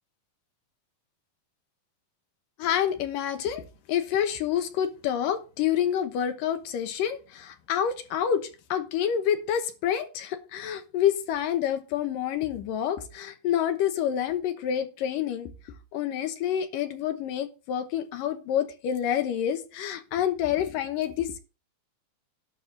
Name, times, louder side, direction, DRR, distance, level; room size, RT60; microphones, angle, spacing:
voice 1, 2.6-3.6 3.9-15.5 15.9-21.4, left 9 dB, 70° left, 2.5 m, -28 dB
12.0 x 4.2 x 7.6 m
omnidirectional pair, 4.4 m